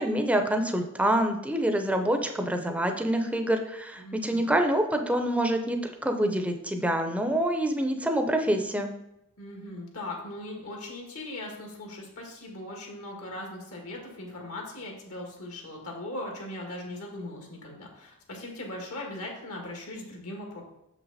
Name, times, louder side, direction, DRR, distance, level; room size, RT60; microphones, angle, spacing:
voice 1, 0.0-8.9, right 1 dB, 5° right, 4 dB, 0.6 m, -26 dB
voice 2, 4.0-4.5 9.4-20.6, left 1 dB, 75° left, 0 dB, 1.8 m, -39 dB
6.7 x 5.9 x 4.1 m, 0.83 s
head